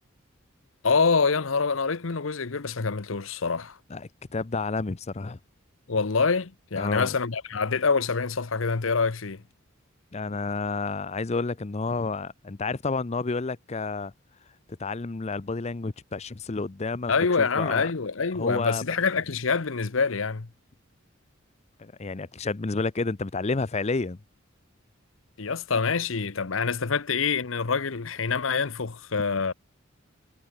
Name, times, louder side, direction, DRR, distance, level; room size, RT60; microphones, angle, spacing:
voice 1, 0.8-3.8 5.9-9.4 17.1-20.5 25.4-29.5, left 5 dB, 70° left, 0.9 m, -26 dB
voice 2, 3.9-5.4 6.8-7.1 10.1-14.1 14.8-17.1 17.4-17.9 18.3-18.8 21.8-24.2, left 3 dB, 30° left, 0.6 m, -30 dB
head